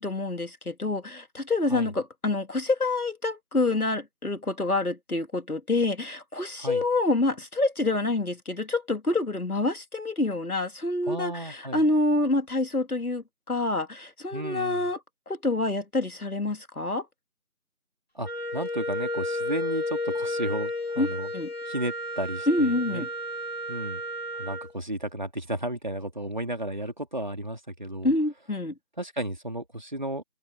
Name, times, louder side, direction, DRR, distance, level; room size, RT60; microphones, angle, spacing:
voice 1, 0.0-15.0 15.3-17.1 21.0-21.1 21.3-21.5 22.5-23.1 28.0-28.7, left 2 dB, 80° left, 2.4 m, -27 dB
voice 2, 11.1-11.8 14.3-14.9 18.1-21.3 21.6-23.1 23.7-24.0 24.3-28.1 29.0-30.2, right 1 dB, 30° right, 3.4 m, -33 dB
Wind instrument woodwind instrument, 18.2-24.7, left 1 dB, 45° left, 2.7 m, -32 dB
figure-of-eight pair, 175°, 43 cm